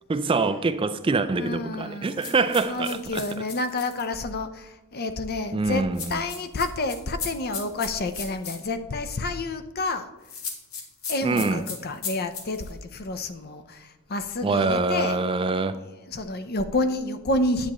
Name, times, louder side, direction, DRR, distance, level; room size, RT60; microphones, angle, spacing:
voice 1, 0.1-3.2 5.5-6.2 11.2-11.6 14.4-15.8, right 3 dB, 25° right, 0.3 m, -25 dB
voice 2, 1.3-10.1 11.1-15.8 16.0-17.7, left 2 dB, 45° left, 0.7 m, -29 dB
sound 1, 2.2-4.1 6.0-8.6 10.2-12.7, left 6 dB, 70° left, 1.6 m, -36 dB
9.9 x 8.6 x 3.1 m
head